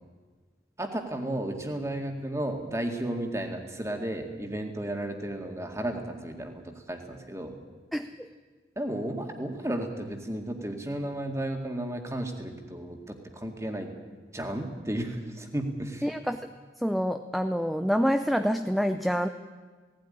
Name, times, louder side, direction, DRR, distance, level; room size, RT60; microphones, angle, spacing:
voice 1, 0.8-7.5 8.8-13.9 14.3-16.1, right 1 dB, 15° right, 4 dB, 2.1 m, -33 dB
voice 2, 7.9-8.3 16.0-19.3, equal, ahead, 7 dB, 0.5 m, -27 dB
18.0 x 16.0 x 9.8 m, 1.4 s
head